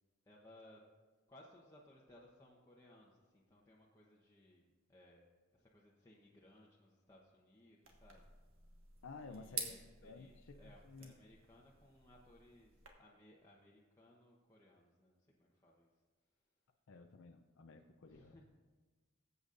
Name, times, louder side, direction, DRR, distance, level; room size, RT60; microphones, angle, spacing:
voice 1, 0.3-0.9 1.3-5.2 5.5-8.3 9.2-15.9 18.0-18.4, left 1 dB, 15° left, -4 dB, 1.0 m, -63 dB
sound 1, 7.8-12.9, right 5 dB, 70° right, 1.5 m, -50 dB
voice 2, 9.0-9.7 10.0-11.1 16.9-18.4, left 4 dB, 65° left, 5 dB, 0.5 m, -54 dB
19.5 x 8.1 x 2.6 m, 1.3 s
head